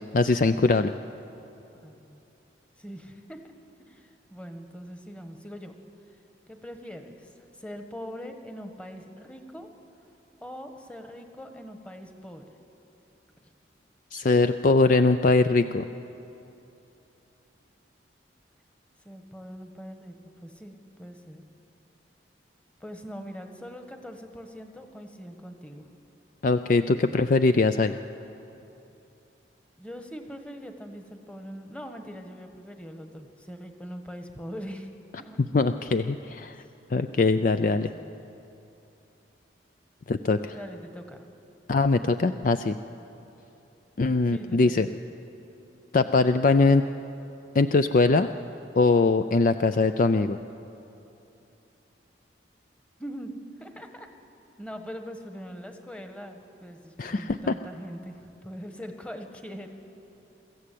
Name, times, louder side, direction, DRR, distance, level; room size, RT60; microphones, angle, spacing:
voice 1, 0.1-0.9 14.1-15.8 26.4-28.0 35.5-36.6 36.9-37.9 40.1-40.6 41.7-42.8 44.0-44.9 45.9-46.8 47.5-48.3 48.8-50.4 57.0-57.6, left 3 dB, 45° left, 10 dB, 0.4 m, -22 dB
voice 2, 1.7-2.2 2.8-3.4 3.8-5.7 6.5-9.7 10.4-12.4 13.4-13.5 19.0-20.1 20.4-21.4 22.8-25.9 29.8-34.9 35.2-35.4 37.6-38.1 40.5-41.2 44.3-45.0 53.0-53.3 53.6-54.1 54.6-59.7, equal, 5° left, 5 dB, 1.3 m, -42 dB
23.5 x 14.5 x 8.4 m, 2.9 s
head